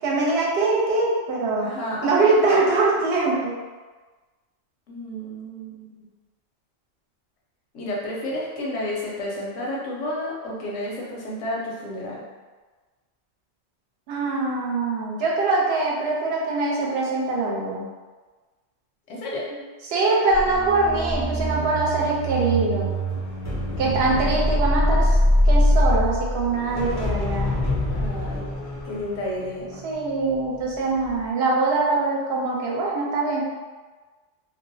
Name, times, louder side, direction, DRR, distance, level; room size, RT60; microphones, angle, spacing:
voice 1, 0.0-1.7 2.0-3.5 14.1-17.9 19.8-22.9 23.8-25.1 25.4-27.6 29.8-33.4, right 3 dB, 65° right, -3 dB, 0.8 m, -23 dB
voice 2, 1.6-2.4 4.9-6.0 7.7-12.2 19.1-19.5 23.8-24.6 27.9-28.4 28.8-29.8, left 1 dB, 85° left, -4 dB, 1.0 m, -31 dB
sound 1, 20.3-30.6 31.0-31.3, equal, 30° left, 0.3 m, -24 dB
2.5 x 2.0 x 2.6 m, 1.3 s
omnidirectional pair, 1.3 m